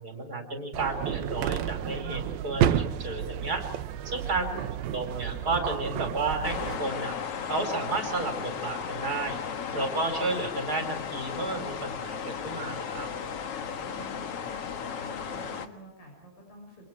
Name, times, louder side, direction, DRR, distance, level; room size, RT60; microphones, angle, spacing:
voice 1, 0.0-3.6 4.0-4.4 4.9-7.1 7.5-9.4 9.7-13.1, right 3 dB, 25° right, 5 dB, 4.7 m, -32 dB
sound 1, 0.7-6.8, right 10 dB, 90° right, 2.8 m, -31 dB
voice 2, 4.4-4.8 13.8-14.2 14.9-16.9, right 1 dB, 70° left, 1 dB, 8.2 m, -48 dB
sound 2, 6.4-15.7, left 7 dB, 50° left, 2.1 m, -35 dB
29.0 x 27.0 x 4.7 m, 0.74 s
omnidirectional pair, 4.1 m